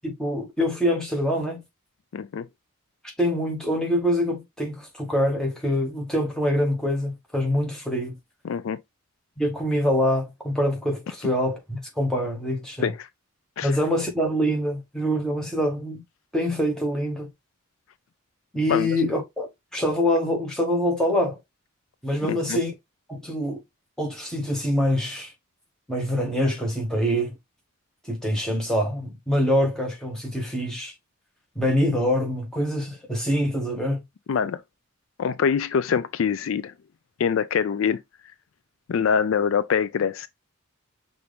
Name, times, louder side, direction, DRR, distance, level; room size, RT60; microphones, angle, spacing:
voice 1, 0.0-1.6 3.2-8.2 9.4-12.9 13.6-16.0 16.3-17.3 18.5-21.4 22.0-22.7 23.1-23.6 24.0-25.3 25.9-27.3 28.1-30.9 31.5-34.0, equal, 5° left, 1.3 m, -25 dB
voice 2, 2.1-2.5 8.4-8.8 12.8-13.1 13.6-13.7 18.7-19.0 22.3-22.6 34.3-34.6 35.2-36.7 37.2-38.0 38.9-40.3, left 7 dB, 65° left, 0.4 m, -24 dB
5.8 x 2.6 x 3.4 m
head